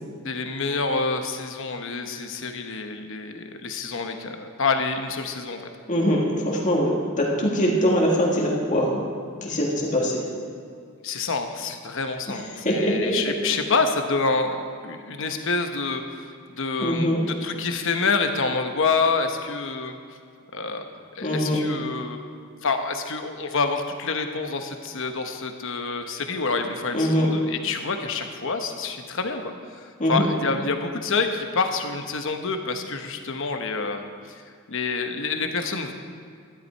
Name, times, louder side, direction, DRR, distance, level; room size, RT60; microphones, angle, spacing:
voice 1, 0.2-5.6 11.0-20.0 20.5-20.8 21.1-22.2 22.6-34.4 34.7-35.9, left 4 dB, 60° left, 6 dB, 1.0 m, -27 dB
voice 2, 5.9-9.0 9.4-10.2 12.6-13.1 16.8-17.2 21.2-21.6 26.9-27.3 30.0-30.3, equal, 35° left, -2 dB, 2.0 m, -22 dB
13.0 x 11.0 x 4.5 m, 2.3 s
head